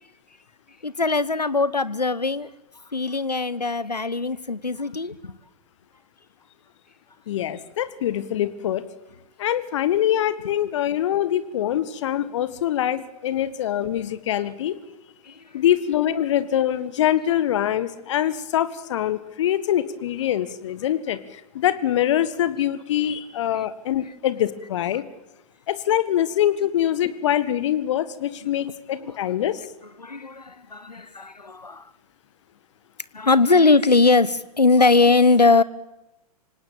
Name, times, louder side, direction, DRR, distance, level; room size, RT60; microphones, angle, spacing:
voice 1, 0.8-2.5 2.9-5.4 28.4-28.7 29.0-29.1 30.0-31.8 33.1-35.6, left 3 dB, 85° left, 18 dB, 1.1 m, -20 dB
voice 2, 7.3-8.8 9.4-14.8 15.5-25.0 25.7-29.6, left 11 dB, 50° left, 15 dB, 1.6 m, -24 dB
26.5 x 18.0 x 8.9 m, 0.95 s
figure-of-eight pair, 110°, 20 cm